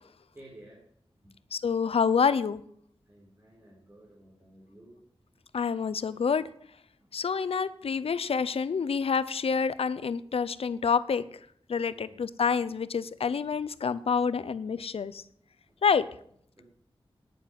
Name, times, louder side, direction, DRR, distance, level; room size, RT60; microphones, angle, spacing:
voice 1, 0.3-0.9 1.2-1.3 3.1-5.0 7.0-7.1 11.9-12.3 15.7-15.8 16.6-16.7, right 1 dB, 25° right, -4 dB, 4.0 m, -53 dB
voice 2, 1.5-2.6 5.5-6.5 7.1-11.2 11.7-15.2 15.8-16.1, left 6 dB, 85° left, 15 dB, 0.7 m, -27 dB
10.0 x 9.3 x 9.3 m, 0.67 s
wide cardioid pair, 80°, 10 cm